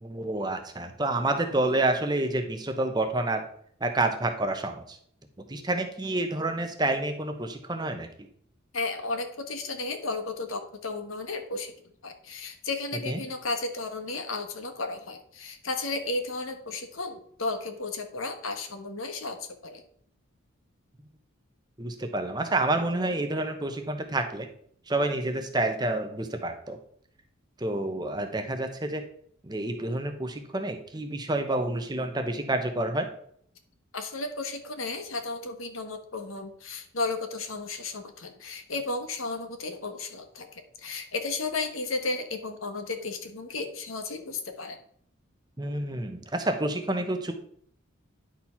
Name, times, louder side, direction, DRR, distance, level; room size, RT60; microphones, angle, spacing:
voice 1, 0.0-3.5 3.8-5.0 5.5-8.1 13.1-13.2 21.8-24.5 24.9-26.8 27.6-29.0 29.4-33.1 45.6-47.3, right 2 dB, 20° right, 6 dB, 0.9 m, -28 dB
voice 2, 8.7-11.7 12.0-19.8 33.9-44.8, left 3 dB, 85° left, 6 dB, 1.4 m, -34 dB
10.5 x 4.5 x 5.7 m, 0.62 s
head